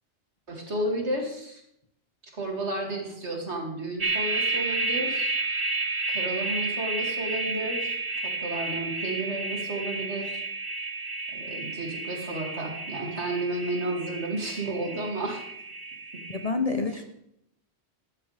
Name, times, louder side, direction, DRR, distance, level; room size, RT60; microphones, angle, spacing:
voice 1, 0.5-1.6 2.4-5.4 6.1-7.9 8.2-10.4 11.3-15.4 16.7-16.9, right 1 dB, 75° right, 0 dB, 2.9 m, -32 dB
sound 1, 4.0-16.5, right 3 dB, 55° right, 1.5 m, -31 dB
voice 2, 16.3-17.0, left 3 dB, 35° left, 7 dB, 0.9 m, -28 dB
13.0 x 13.0 x 3.4 m, 0.75 s
omnidirectional pair, 1.2 m